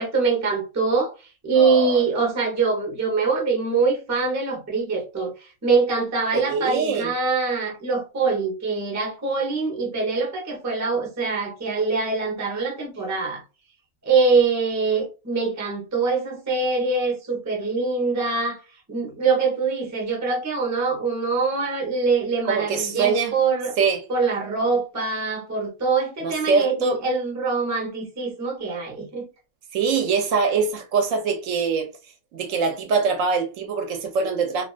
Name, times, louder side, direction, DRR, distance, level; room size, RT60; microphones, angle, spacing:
voice 1, 0.0-13.4 14.0-18.6 18.9-23.8 24.1-29.3, right 4 dB, 20° right, 0.4 m, -24 dB
voice 2, 1.6-2.0 6.3-7.1 22.4-23.4 23.8-24.0 26.2-27.0 29.7-31.9 32.3-34.6, right 5 dB, 70° right, 0.9 m, -23 dB
2.4 x 2.4 x 2.3 m
omnidirectional pair, 1.6 m